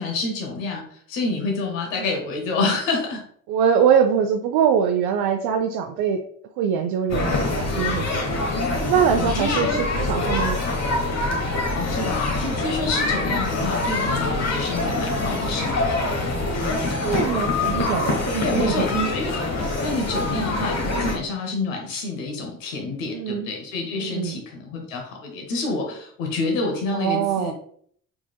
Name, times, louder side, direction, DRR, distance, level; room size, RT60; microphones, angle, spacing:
voice 1, 0.0-3.2 9.2-9.8 11.7-15.9 18.4-19.5 19.8-27.5, left 3 dB, 85° left, 2 dB, 1.0 m, -28 dB
voice 2, 3.5-6.2 6.6-8.2 8.8-10.6 11.0-11.2 13.0-13.1 16.7-18.7 23.1-23.5 24.0-24.4 26.9-27.5, right 7 dB, 70° right, 5 dB, 0.5 m, -23 dB
sound 1, 7.1-21.2, left 2 dB, 45° left, 1.3 m, -25 dB
4.6 x 4.0 x 2.2 m, 0.62 s
hypercardioid pair, 45°, 38 cm